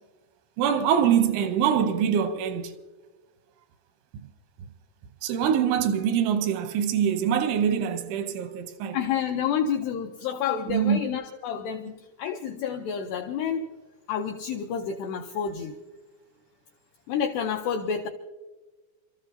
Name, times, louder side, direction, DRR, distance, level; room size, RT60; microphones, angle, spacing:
voice 1, 0.6-2.7 5.2-9.0 10.7-11.0, right 8 dB, 85° right, 3.1 m, -24 dB
voice 2, 8.9-13.8 14.1-15.8 17.1-18.1, left 7 dB, 85° left, 2.3 m, -29 dB
29.0 x 13.5 x 2.7 m
omnidirectional pair, 5.6 m